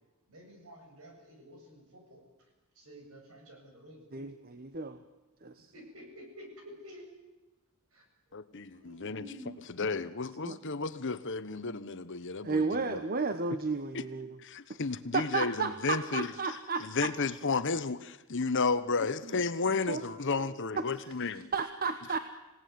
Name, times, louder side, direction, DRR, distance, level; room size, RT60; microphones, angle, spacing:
voice 1, 0.3-2.2 2.7-4.0 5.7-7.1 7.9-8.0 8.8-9.7, equal, 70° right, 3 dB, 7.6 m, -50 dB
voice 2, 4.1-5.0 5.4-5.7 10.4-10.6 12.4-14.4 15.1-17.1 19.3-19.4 19.9-20.0 20.7-20.8 21.5-22.2, right 4 dB, 45° right, 9 dB, 1.1 m, -33 dB
voice 3, 8.3-9.3 9.8-13.0 13.9-14.0 14.4-21.5, left 4 dB, 55° left, 13 dB, 1.1 m, -33 dB
26.5 x 17.5 x 9.5 m, 1.1 s
head